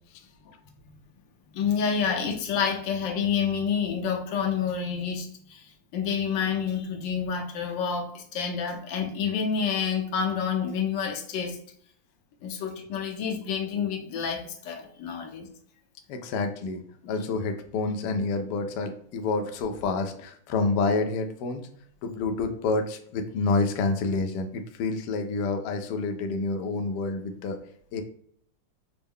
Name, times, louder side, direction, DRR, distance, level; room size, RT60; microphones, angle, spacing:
voice 1, 1.5-11.6 12.4-15.5, left 6 dB, 70° left, 3 dB, 1.3 m, -28 dB
voice 2, 16.1-21.6 22.0-27.6 27.9-28.0, left 3 dB, 85° left, 5 dB, 0.9 m, -28 dB
4.4 x 2.0 x 3.4 m, 0.63 s
omnidirectional pair, 2.3 m